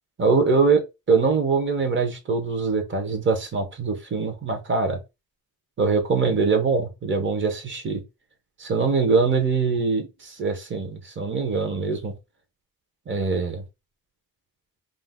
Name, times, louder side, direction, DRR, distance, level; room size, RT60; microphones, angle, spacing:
voice 1, 0.2-0.8 1.1-5.0 5.8-8.0 8.6-12.1 13.1-13.6, right 4 dB, 35° right, 0.8 m, -23 dB
2.6 x 2.1 x 3.4 m
wide cardioid pair, 135°, 35 cm